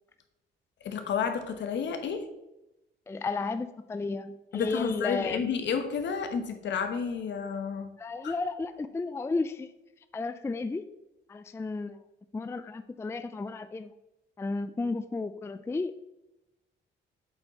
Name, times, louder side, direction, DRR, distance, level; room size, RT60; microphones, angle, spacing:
voice 1, 0.8-2.3 4.5-7.9 8.2-8.3, left 6 dB, 65° left, 7 dB, 1.1 m, -31 dB
voice 2, 3.1-5.4 8.0-9.7 10.1-10.8 11.3-12.0 12.3-13.9 14.4-16.0, left 3 dB, 15° left, 10 dB, 0.3 m, -33 dB
7.8 x 4.5 x 4.2 m, 0.91 s
cardioid pair, 90°, 20 cm